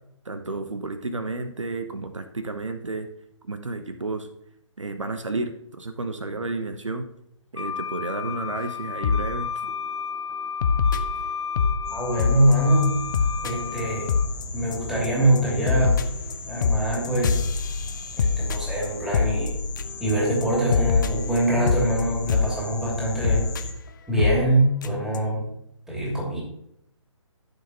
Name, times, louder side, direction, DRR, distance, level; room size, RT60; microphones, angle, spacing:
voice 1, 0.2-3.1 3.5-4.3 4.8-5.5 5.8-7.1 7.5-9.5, right 3 dB, 75° right, 8 dB, 1.1 m, -31 dB
Wind instrument woodwind instrument, 7.6-14.3, left 6 dB, 70° left, 1.2 m, -33 dB
sound 1, 9.0-9.3 9.7-9.9 10.6-11.8 12.2-12.5 12.8-12.9 13.1-13.5 13.8-13.9 14.1-14.4 14.7-15.1 15.3-20.1 20.4-20.5 20.7-22.5 23.2-23.6 24.2-24.4 24.8-24.9 25.1-25.2, left 5 dB, 40° left, 0.8 m, -24 dB
sound 2, 11.8-23.7, left 3 dB, 25° left, 2.2 m, -37 dB
voice 2, 11.9-13.0 13.4-14.1 14.5-16.0 16.5-17.4 18.2-19.5 20.0-23.5 24.1-25.5 25.9-26.4, right 1 dB, 5° right, -5 dB, 2.8 m, -23 dB
14.0 x 6.9 x 3.0 m, 0.76 s
figure-of-eight pair, 140°, 16 cm